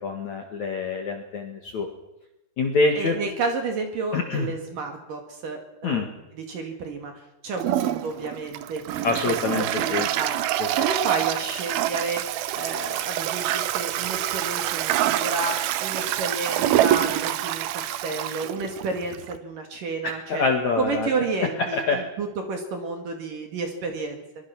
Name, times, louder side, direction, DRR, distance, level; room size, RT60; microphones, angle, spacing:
voice 1, 0.0-1.9 2.6-3.2 4.1-4.5 5.8-6.1 9.0-10.1 10.6-10.7 20.0-21.1 21.7-22.0, left 4 dB, 55° left, 3 dB, 2.2 m, -25 dB
voice 2, 2.9-7.1 7.4-20.4 20.8-24.2, right 4 dB, 55° right, 4 dB, 3.2 m, -31 dB
Toilet flush, 7.6-19.4, right 13 dB, 85° right, 2.1 m, -26 dB
23.5 x 22.0 x 6.0 m, 0.92 s
omnidirectional pair, 5.5 m